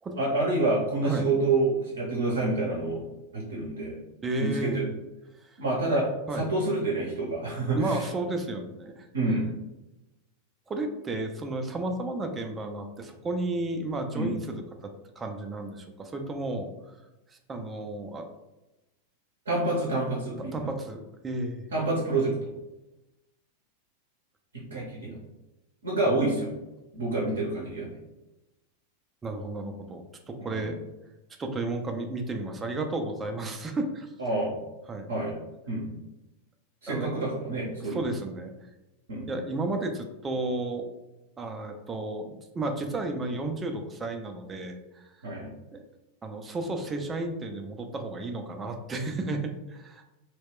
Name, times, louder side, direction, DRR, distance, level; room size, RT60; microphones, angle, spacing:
voice 1, 0.2-3.0 3.3-4.0 4.4-4.8 5.6-8.1 9.1-9.5 14.1-14.4 19.5-20.7 21.7-22.5 24.7-25.2 25.8-26.5 26.9-27.9 30.4-30.7 34.2-34.6 35.1-35.4 35.7-35.9 36.8-38.1 39.1-39.3 45.2-45.5, right 2 dB, 70° right, -4 dB, 0.6 m, -28 dB
voice 2, 4.2-4.9 5.4-5.6 6.3-6.5 7.8-9.1 10.7-14.9 15.2-16.9 17.5-18.2 20.5-21.7 26.0-26.1 29.2-30.8 31.4-34.1 34.9-35.1 36.9-37.1 37.8-38.5 39.3-40.9 41.4-45.1 45.7-45.8 46.2-50.0, right 2 dB, 20° right, 5 dB, 0.4 m, -33 dB
2.2 x 2.1 x 3.5 m, 0.99 s
figure-of-eight pair, 90°, 0 cm